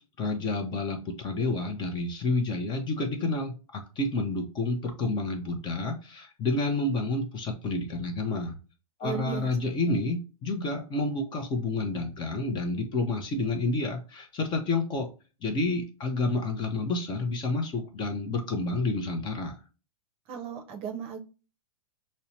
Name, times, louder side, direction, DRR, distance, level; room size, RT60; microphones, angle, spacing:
voice 1, 0.2-8.6 9.0-15.1 15.4-19.6, left 2 dB, 25° left, 4 dB, 0.7 m, -29 dB
voice 2, 9.0-9.5 20.3-21.2, right 7 dB, 30° right, 3 dB, 0.7 m, -35 dB
5.4 x 2.1 x 2.7 m, 0.33 s
hypercardioid pair, 120°, 18 cm